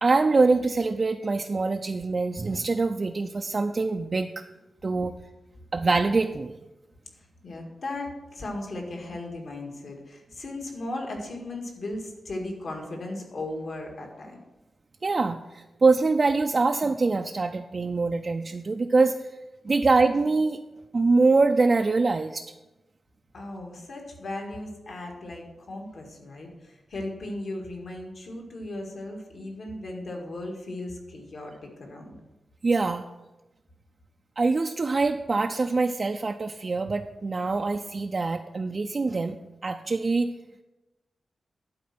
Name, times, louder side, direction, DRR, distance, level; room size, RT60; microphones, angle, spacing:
voice 1, 0.0-4.5 4.8-5.1 5.7-6.6 15.0-19.3 19.6-20.6 20.9-22.5 32.6-33.1 34.4-40.3, right 3 dB, 40° right, 5 dB, 0.3 m, -24 dB
voice 2, 7.2-14.4 23.3-32.1, left 2 dB, 60° left, 1 dB, 1.8 m, -37 dB
11.5 x 4.4 x 5.9 m, 1.0 s
wide cardioid pair, 120°, 0 cm